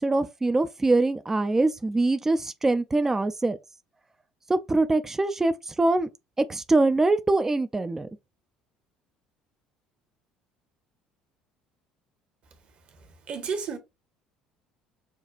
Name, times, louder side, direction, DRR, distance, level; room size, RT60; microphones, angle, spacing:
voice 1, 0.0-3.6 4.5-6.1 6.5-8.1, right 2 dB, 15° right, 0.4 m, -23 dB
voice 2, 13.3-13.8, right 5 dB, 50° right, 1.0 m, -31 dB
5.9 x 2.3 x 2.4 m
hypercardioid pair, 60°, 3 cm